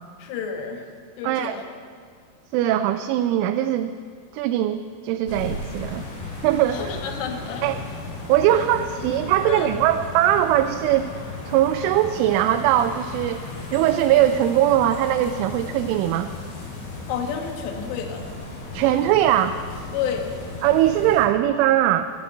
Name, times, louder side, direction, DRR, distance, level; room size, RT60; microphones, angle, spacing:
voice 1, 0.2-0.9 1.2-1.6 6.7-7.7 8.5-8.6 9.4-9.9 17.1-18.3 19.9-20.3, left 7 dB, 70° left, 4 dB, 3.5 m, -30 dB
voice 2, 1.2-1.6 2.5-3.9 4.3-6.0 6.4-6.8 7.6-7.8 8.3-11.1 11.5-13.4 13.7-16.3 18.7-19.6 20.6-22.0, right 12 dB, 85° right, 7 dB, 3.1 m, -20 dB
sound 1, 5.3-21.3, left 3 dB, 45° left, 3.8 m, -35 dB
13.5 x 12.5 x 7.8 m, 2.1 s
omnidirectional pair, 5.6 m